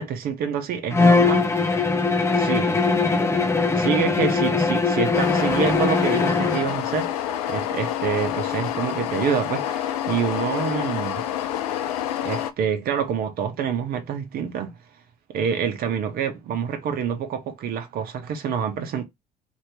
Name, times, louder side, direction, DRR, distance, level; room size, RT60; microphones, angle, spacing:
voice 1, 0.0-1.5 2.3-2.8 3.7-7.1 7.5-11.2 12.2-14.7 15.3-19.0, right 7 dB, 50° right, 0.8 m, -27 dB
Bowed string instrument, 0.9-6.7, left 4 dB, 15° left, 0.7 m, -21 dB
sound 1, 5.1-12.5, left 11 dB, 70° left, 0.4 m, -28 dB
2.8 x 2.6 x 3.3 m
figure-of-eight pair, 55°, 20 cm